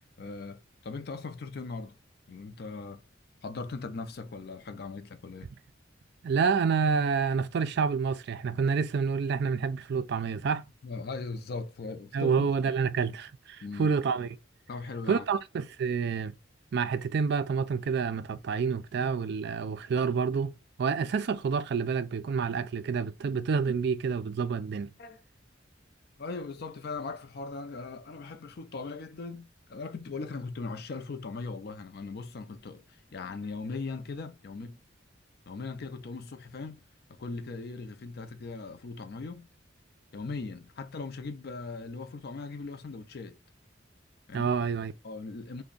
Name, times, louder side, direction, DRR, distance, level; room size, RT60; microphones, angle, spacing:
voice 1, 0.2-2.0 2.3-3.0 3.4-5.5 10.8-12.5 13.6-13.9 14.7-15.2 25.0-25.2 26.2-34.8 35.5-36.8 37.1-39.5 40.1-43.4 44.3-44.5 45.0-45.6, left 4 dB, 55° left, 0.5 m, -39 dB
voice 2, 6.2-10.7 12.1-14.4 15.1-16.3 16.7-24.9 44.3-44.9, right 5 dB, 60° right, 0.3 m, -28 dB
3.4 x 2.1 x 3.8 m
head